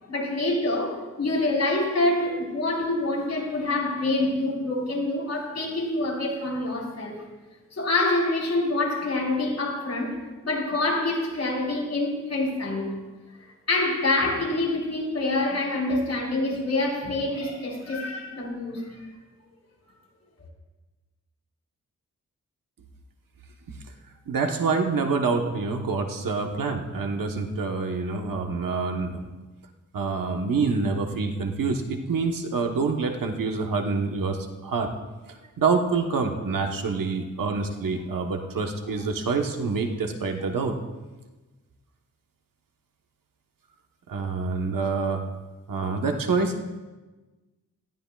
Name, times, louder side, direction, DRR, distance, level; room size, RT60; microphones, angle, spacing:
voice 1, 0.0-7.3 7.7-12.9 13.7-19.1, left 2 dB, 55° left, -3 dB, 4.6 m, -26 dB
voice 2, 24.3-29.2 29.9-34.9 35.6-40.8 44.1-45.2 45.7-46.6, right 4 dB, 90° right, 4 dB, 1.2 m, -26 dB
18.5 x 15.0 x 2.4 m, 1.2 s
wide cardioid pair, 80°, 32 cm